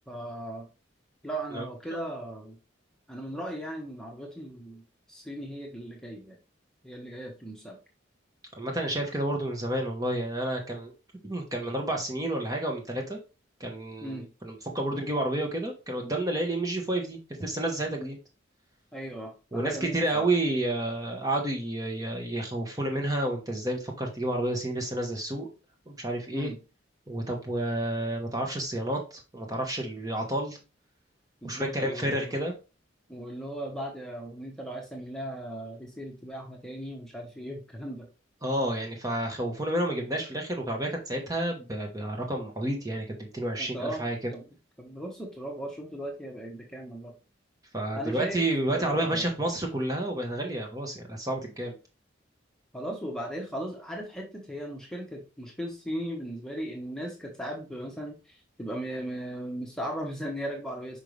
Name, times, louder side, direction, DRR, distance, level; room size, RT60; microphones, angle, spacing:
voice 1, 0.1-0.7 1.2-2.6 3.1-4.8 5.1-6.4 6.8-7.8 14.0-14.3 18.9-20.3 26.3-26.6 31.4-32.3 33.1-38.1 43.6-44.0 44.3-44.4 44.8-47.1 47.9-48.4 48.7-49.3 52.7-61.0, right 1 dB, 5° left, 0 dB, 1.2 m, -37 dB
voice 2, 8.6-10.9 11.2-13.2 13.6-18.2 19.5-25.5 25.9-26.5 27.1-30.6 31.4-32.5 38.4-44.2 47.7-51.8, right 1 dB, 20° right, 1 dB, 1.2 m, -30 dB
5.5 x 5.2 x 3.3 m, 0.31 s
head